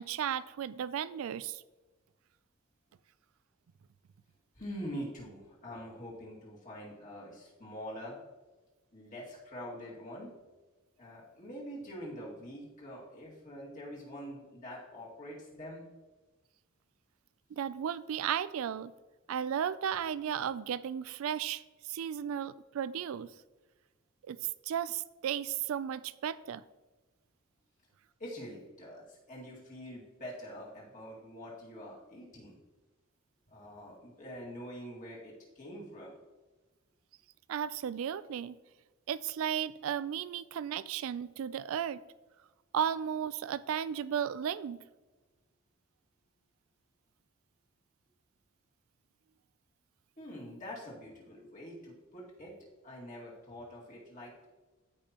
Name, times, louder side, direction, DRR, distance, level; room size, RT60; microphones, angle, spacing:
voice 1, 0.0-1.6 17.5-18.9 19.3-23.3 24.3-26.6 37.5-38.6 39.1-42.0 42.7-44.8, right 9 dB, 70° right, 17 dB, 0.3 m, -34 dB
voice 2, 4.6-8.2 8.9-10.3 11.0-15.8 28.2-32.6 33.5-36.2 50.2-52.5 52.8-54.5, equal, 35° left, -4 dB, 2.1 m, -45 dB
13.5 x 5.3 x 2.9 m, 1.2 s
head